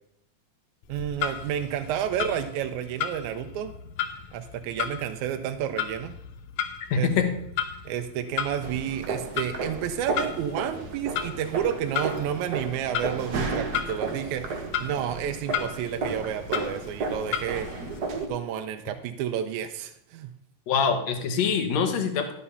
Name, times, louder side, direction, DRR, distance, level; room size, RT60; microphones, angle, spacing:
Clock, 0.8-18.0, left 9 dB, 85° left, 2.3 m, -35 dB
voice 1, 0.9-3.7 4.3-6.2 7.0-7.1 7.9-17.7 18.3-20.3, right 9 dB, 85° right, 8 dB, 2.0 m, -31 dB
voice 2, 6.9-7.3 20.7-22.3, left 6 dB, 70° left, 6 dB, 2.4 m, -24 dB
sound 1, 8.6-18.3, right 4 dB, 55° right, 1.2 m, -33 dB
12.5 x 6.9 x 5.5 m, 0.75 s
omnidirectional pair, 3.3 m